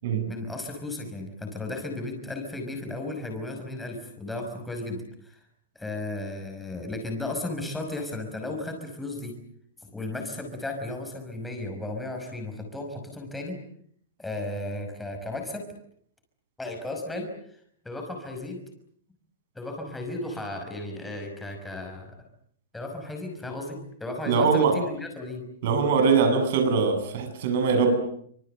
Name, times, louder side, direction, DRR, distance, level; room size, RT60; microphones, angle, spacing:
voice 1, 0.3-5.4 5.8-9.3 9.9-13.6 14.2-15.7 16.6-17.6 17.8-18.6 19.6-22.1 22.7-25.5, left 2 dB, 5° left, 3 dB, 5.6 m, -34 dB
voice 2, 24.3-24.8 25.6-28.0, right 5 dB, 50° right, 6 dB, 7.7 m, -22 dB
26.0 x 26.0 x 8.0 m, 0.66 s
supercardioid pair, 175°, 0 cm